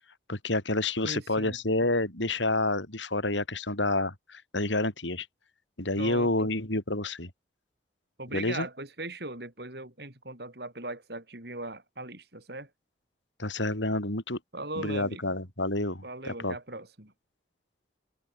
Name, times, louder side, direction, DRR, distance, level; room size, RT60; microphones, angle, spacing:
voice 1, 0.3-5.3 5.8-7.3 8.3-8.7 13.4-14.4 14.8-16.5, left 2 dB, 85° left, 6.4 m, -29 dB
voice 2, 1.0-1.6 5.9-6.5 8.2-12.7 14.5-15.2 16.0-17.1, right 2 dB, 60° right, 5.0 m, -39 dB
head